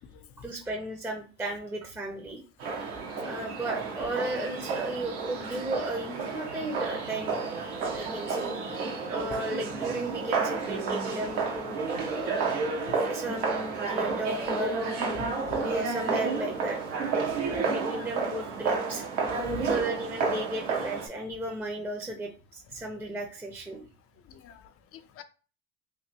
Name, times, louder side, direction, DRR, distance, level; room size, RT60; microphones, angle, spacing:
voice 1, 0.4-2.4 3.2-7.4 7.9-8.8 9.1-11.8 12.1-12.6 13.0-14.8 15.6-16.8 17.5-19.0 19.6-23.9, right 1 dB, 5° right, 2 dB, 0.6 m, -35 dB
sound 1, 2.6-21.1, right 4 dB, 80° right, 1.0 m, -31 dB
voice 2, 15.1-15.6 17.9-18.1 19.4-19.7 24.3-25.2, left 5 dB, 40° left, 11 dB, 0.5 m, -44 dB
3.1 x 2.6 x 2.8 m, 0.36 s
supercardioid pair, 90°, 34 cm